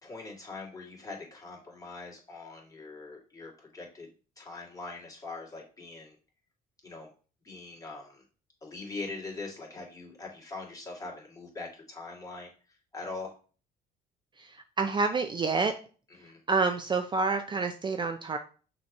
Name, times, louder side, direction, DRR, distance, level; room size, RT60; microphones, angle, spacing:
voice 1, 0.0-4.1 4.4-6.2 6.8-7.1 7.4-8.2 8.6-12.5 12.9-13.3 16.2-16.4, left 3 dB, 20° left, -2 dB, 2.3 m, -42 dB
voice 2, 14.4-15.7 16.5-18.4, right 4 dB, 25° right, 7 dB, 0.5 m, -28 dB
6.1 x 3.0 x 5.3 m, 0.38 s
cardioid pair, 110°, 17 cm